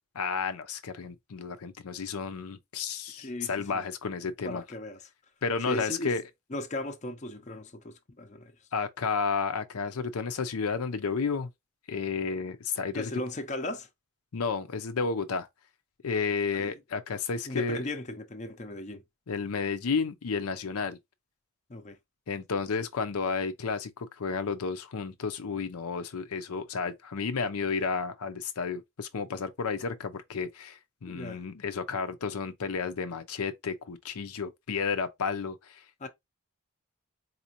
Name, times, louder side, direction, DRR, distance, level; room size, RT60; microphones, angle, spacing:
voice 1, 0.1-4.6 5.4-6.2 8.7-11.5 11.9-13.1 14.3-15.5 16.0-17.8 19.3-21.0 22.3-36.1, left 5 dB, 80° left, 0.6 m, -32 dB
voice 2, 3.2-3.8 4.4-5.0 5.7-6.1 6.5-8.5 12.9-13.9 16.6-16.7 17.5-19.0 21.7-22.0 31.1-31.4 36.0-36.1, left 1 dB, 30° left, 0.6 m, -37 dB
4.2 x 2.6 x 2.9 m
head